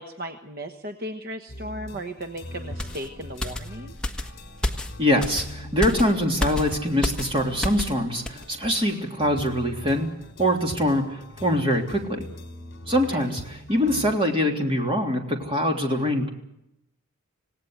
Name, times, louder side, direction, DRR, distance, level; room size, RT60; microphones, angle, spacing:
voice 1, 0.0-3.9 13.1-13.3, right 1 dB, 45° right, 6 dB, 1.3 m, -36 dB
sound 1, 1.5-14.3, left 1 dB, 50° left, 4.5 m, -42 dB
sound 2, 2.8-8.0 8.3-8.5, left 1 dB, 5° left, 1.4 m, -31 dB
voice 2, 5.0-10.1 10.4-12.3 12.9-16.3, equal, 25° right, 2 dB, 3.3 m, -24 dB
27.0 x 18.0 x 8.0 m, 0.84 s
head